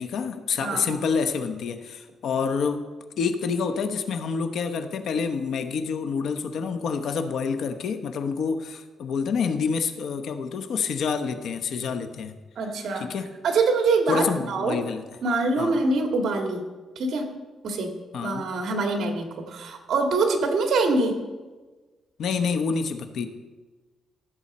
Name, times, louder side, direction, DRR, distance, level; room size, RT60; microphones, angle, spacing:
voice 1, 0.0-2.9 3.2-12.4 13.0-13.3 14.1-15.0 15.6-15.8 18.1-18.5 22.2-23.3, left 5 dB, 60° left, 8 dB, 0.9 m, -27 dB
voice 2, 0.6-1.0 12.6-13.1 13.4-14.8 15.2-16.6 17.0-17.3 17.6-21.2, right 3 dB, 60° right, 3 dB, 1.9 m, -24 dB
15.0 x 7.8 x 4.2 m, 1.3 s
cardioid pair, 145°, 0 cm